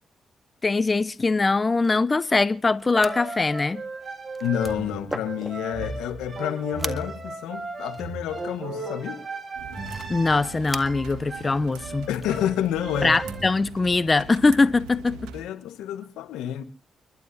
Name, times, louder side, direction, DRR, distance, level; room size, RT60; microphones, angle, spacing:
voice 1, 0.6-3.8 10.1-12.1 13.0-15.3, left 3 dB, 35° left, 0.7 m, -22 dB
sound 1, 1.8-2.0 2.8-3.1 3.8-3.9 4.2-5.8 6.3-6.5 6.8-7.1 7.9-8.2 9.8-10.8 12.1-12.3, equal, 5° right, 1.9 m, -37 dB
sound 2, 2.9-13.6, right 3 dB, 35° right, 7.0 m, -36 dB
voice 2, 4.4-9.2 12.1-13.2 15.3-16.6, left 10 dB, 85° left, 1.3 m, -29 dB
sound 3, 9.5-15.4, right 6 dB, 85° right, 1.6 m, -41 dB
30.0 x 12.0 x 2.7 m
hypercardioid pair, 40°, 0 cm